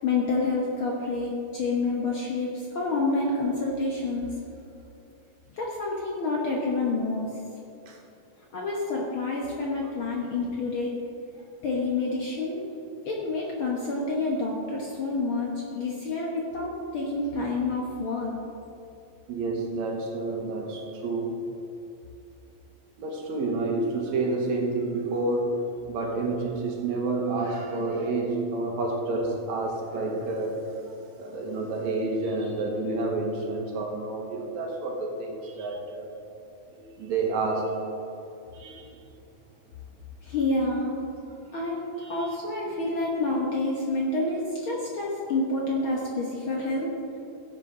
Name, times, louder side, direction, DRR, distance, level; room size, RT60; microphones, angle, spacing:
voice 1, 0.0-4.3 5.5-7.3 8.5-11.0 11.6-12.6 13.0-15.5 15.7-18.3 40.2-41.0 41.5-46.9, left 3 dB, 80° left, -3 dB, 1.1 m, -28 dB
voice 2, 19.3-21.4 23.0-25.6 25.9-36.1 36.7-37.8 38.5-39.0 42.0-42.3, right 3 dB, 65° right, 1 dB, 2.2 m, -29 dB
16.0 x 8.2 x 3.7 m, 2.7 s
omnidirectional pair, 4.0 m